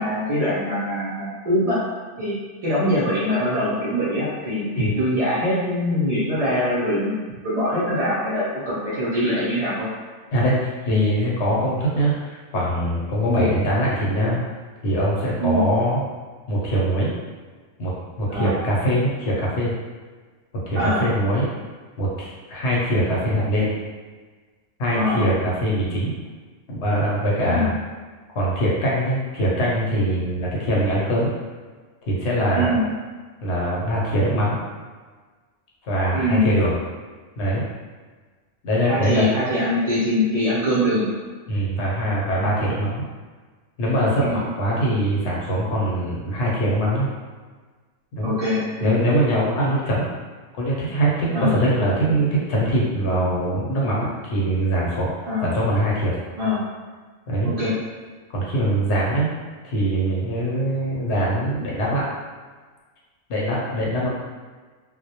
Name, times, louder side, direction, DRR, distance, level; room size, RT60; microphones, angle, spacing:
voice 1, 0.0-1.8 2.2-2.4 2.6-7.2 7.4-9.9 13.3-13.5 15.4-15.6 18.3-18.6 20.8-21.1 24.9-25.3 27.5-27.7 32.6-32.8 36.1-36.5 38.8-41.1 44.2-44.3 48.2-48.9 51.3-51.6 55.3-55.5 56.4-56.6 57.4-57.7, left 1 dB, 65° right, -10 dB, 0.3 m, -23 dB
voice 2, 10.3-14.4 14.8-16.0 16.5-17.1 17.8-17.9 18.2-19.7 20.7-21.5 22.0-23.7 24.8-26.1 26.7-27.7 28.3-31.3 32.1-32.8 33.4-34.6 35.8-36.7 37.4-37.6 38.6-39.3 41.5-43.0 43.8-47.1 48.2-48.3 48.8-50.1 50.5-55.1 55.4-56.2 57.3-57.5 58.3-59.3 59.6-62.1 63.3-64.1, right 1 dB, 70° left, -5 dB, 0.9 m, -22 dB
2.1 x 2.1 x 2.7 m, 1.4 s
omnidirectional pair, 1.3 m